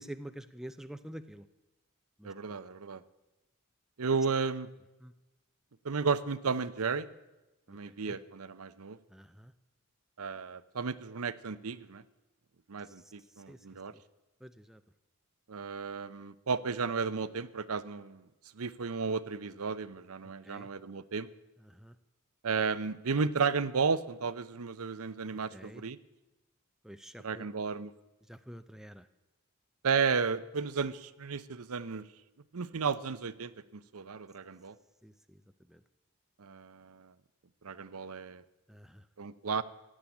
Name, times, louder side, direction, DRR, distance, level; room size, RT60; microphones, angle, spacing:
voice 1, 0.0-1.5 2.2-2.6 5.0-5.1 7.7-8.2 9.1-9.5 12.8-13.7 13.9-14.0 14.4-14.8 20.2-20.7 21.6-22.0 25.3-25.8 26.8-27.5 28.3-29.1 35.0-35.4 35.7-35.8 38.7-39.1, right 1 dB, ahead, 10 dB, 0.4 m, -48 dB
voice 2, 2.2-3.0 4.0-4.7 5.8-7.1 7.7-9.0 10.2-12.0 12.7-13.9 15.5-18.2 18.6-21.3 22.4-26.0 27.2-27.9 29.8-32.1 32.5-34.7 36.4-37.1 37.6-38.4 39.2-39.6, right 5 dB, 80° right, 15 dB, 0.7 m, -33 dB
15.5 x 8.7 x 9.9 m, 1.0 s
head